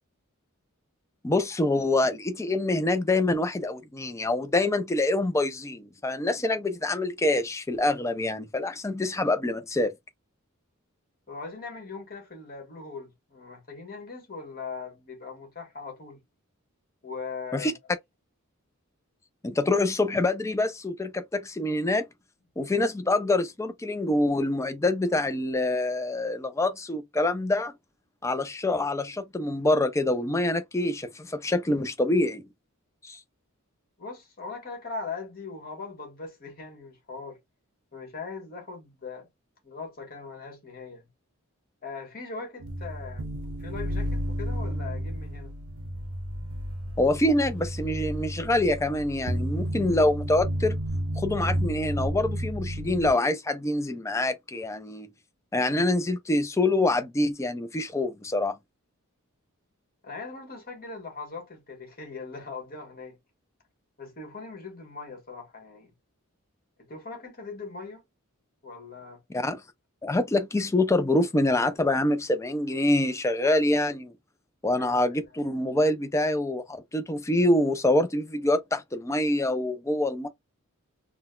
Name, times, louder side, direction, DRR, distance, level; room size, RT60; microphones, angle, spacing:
voice 1, 1.2-9.9 17.5-17.7 19.4-22.1 22.6-27.7 28.2-32.5 33.0-33.2 47.0-50.8 51.2-55.1 55.5-58.6 69.3-69.6 70.0-74.1 74.6-80.3, left 2 dB, 15° left, 0.4 m, -25 dB
voice 2, 11.3-16.2 17.0-17.8 34.0-37.4 37.9-39.3 39.6-41.1 41.8-43.3 43.6-45.5 60.0-63.2 64.0-65.9 66.8-68.0 68.6-69.2 74.8-75.2, left 4 dB, 45° left, 1.5 m, -40 dB
sound 1, 42.6-53.1, equal, 80° right, 0.6 m, -32 dB
3.8 x 2.2 x 2.4 m
head